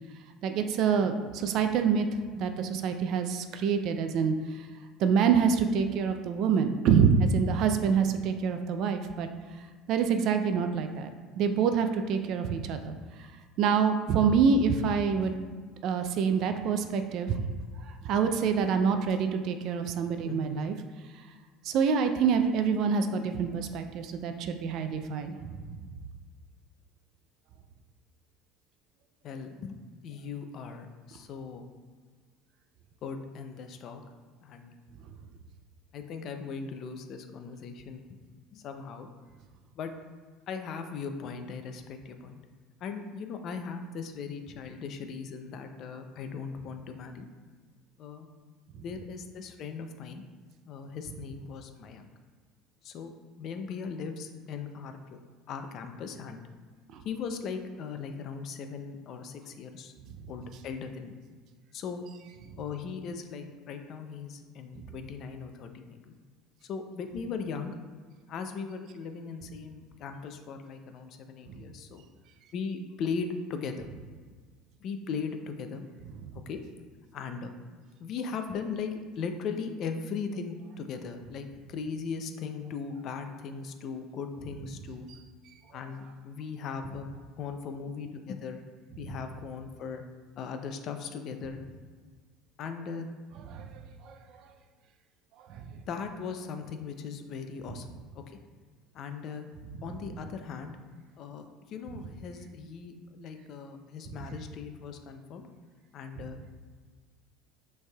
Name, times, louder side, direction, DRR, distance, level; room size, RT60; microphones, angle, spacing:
voice 1, 0.4-2.1 2.4-4.3 5.0-9.3 9.9-11.1 11.4-12.9 13.6-15.3 15.8-17.4 17.9-20.7 21.6-25.8 93.5-93.7 94.0-94.2 95.5-95.6, right 6 dB, 55° right, 7 dB, 0.4 m, -26 dB
voice 2, 20.2-20.7 29.2-29.8 30.0-31.7 33.0-34.0 34.4-34.7 35.9-38.0 38.5-39.1 39.8-39.9 40.5-42.4 42.8-47.3 48.0-48.3 48.7-50.2 50.7-52.1 52.8-53.1 53.4-55.2 55.5-56.4 57.0-59.9 60.3-61.1 61.7-62.0 62.6-66.1 66.6-67.7 68.3-72.0 72.5-73.9 74.8-75.9 76.3-76.6 77.1-77.5 78.0-85.1 85.7-87.1 87.3-88.6 89.0-90.0 90.4-91.6 92.6-93.1 95.9-98.4 98.9-99.5 99.8-100.7 101.2-105.5 105.9-106.5, left 5 dB, 50° left, 7 dB, 0.4 m, -38 dB
6.1 x 3.3 x 2.3 m, 1.5 s
cardioid pair, 130°, 0 cm